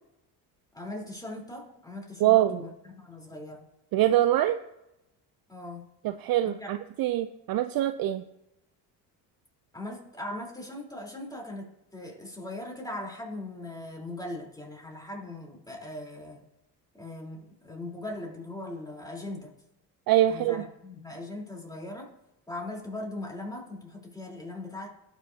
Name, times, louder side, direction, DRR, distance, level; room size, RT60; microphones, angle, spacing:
voice 1, 0.7-2.7 3.0-3.6 5.5-5.8 6.6-6.7 9.7-16.4 16.9-19.5 20.3-22.1 22.5-24.9, left 1 dB, 10° left, -1 dB, 3.6 m, -39 dB
voice 2, 2.2-2.6 3.9-4.6 6.0-8.2 20.1-20.7, right 13 dB, 45° right, 11 dB, 0.5 m, -24 dB
18.5 x 6.2 x 2.8 m, 0.91 s
hypercardioid pair, 60°, 49 cm